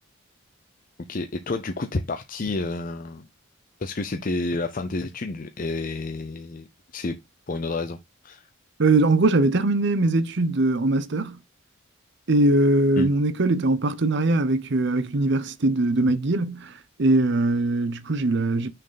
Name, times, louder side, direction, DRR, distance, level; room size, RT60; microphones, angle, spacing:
voice 1, 1.1-3.3 3.8-6.7 6.9-7.2 7.5-8.0 8.2-8.5 13.0-13.1, left 2 dB, 40° left, 0.6 m, -29 dB
voice 2, 8.8-11.4 12.3-16.7 17.0-18.7, right 2 dB, 55° right, 0.7 m, -21 dB
6.3 x 4.4 x 4.0 m
head